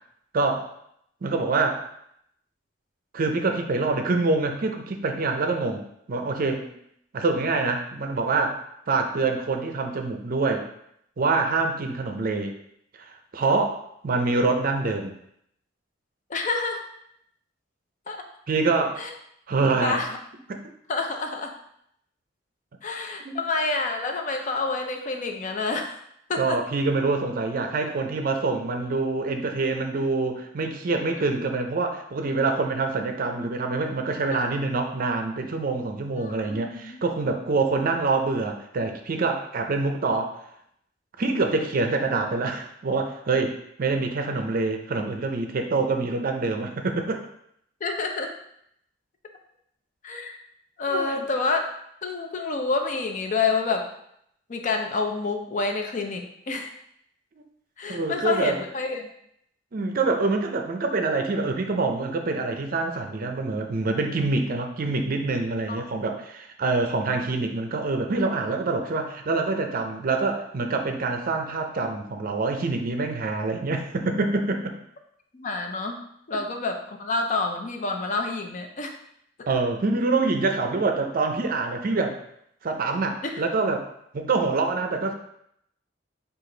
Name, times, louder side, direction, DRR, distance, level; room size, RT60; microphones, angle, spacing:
voice 1, 0.3-0.7 1.2-1.8 3.1-5.8 6.1-6.6 7.1-8.6 8.9-10.7 11.2-12.6 13.0-15.2 18.5-19.0 19.5-20.0 20.5-20.6 23.2-23.4 26.4-40.4 41.2-47.2 50.9-51.2 57.9-58.6 59.7-74.7 79.5-82.2 82.6-83.9 84.1-85.1, right 3 dB, 50° right, 5 dB, 0.5 m, -25 dB
voice 2, 16.3-16.8 18.1-18.3 19.0-19.1 19.8-20.2 20.9-21.5 22.8-26.0 26.3-26.6 31.1-31.3 34.3-34.6 36.2-37.0 47.8-48.3 50.0-50.4 50.8-51.6 52.0-53.9 54.5-56.7 57.8-59.1 65.7-65.8 74.5-74.6 75.3-76.0 76.3-78.9 83.2-83.4, left 3 dB, 40° left, 4 dB, 0.5 m, -28 dB
4.8 x 2.4 x 3.8 m, 0.73 s
head